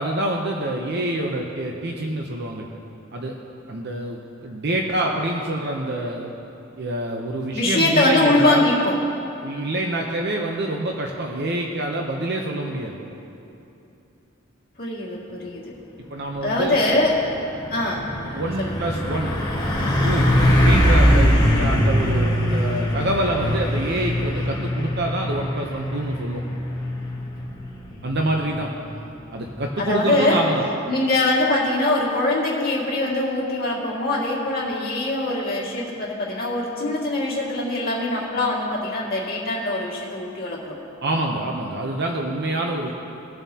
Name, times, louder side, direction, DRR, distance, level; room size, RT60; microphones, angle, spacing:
voice 1, 0.0-2.6 3.1-3.4 3.7-6.3 6.8-8.7 9.4-13.0 16.1-16.8 18.3-19.3 20.0-26.4 28.0-28.7 29.3-30.6 41.0-42.9, right 1 dB, 55° right, 1 dB, 0.7 m, -26 dB
voice 2, 7.5-9.0 14.8-15.7 16.4-17.3 17.7-18.1 18.6-18.8 29.8-30.4 30.9-40.7, left 2 dB, 45° left, -4 dB, 2.1 m, -22 dB
Truck, 16.7-16.8 17.2-29.7, equal, 20° left, 1.5 m, -22 dB
20.0 x 7.2 x 2.8 m, 2.8 s
head